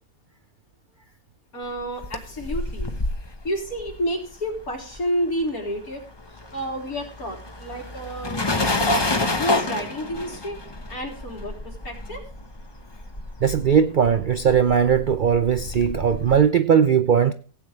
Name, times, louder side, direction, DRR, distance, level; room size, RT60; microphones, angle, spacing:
voice 1, 1.5-2.9 3.4-6.0 6.5-8.5 9.3-10.6 10.9-12.2, equal, 80° left, 3.8 m, -30 dB
sound 1, 1.8-5.4 5.7-16.4, left 2 dB, 20° left, 0.9 m, -29 dB
voice 2, 13.4-17.3, right 7 dB, 65° right, 0.5 m, -19 dB
16.5 x 8.7 x 3.2 m
omnidirectional pair, 1.5 m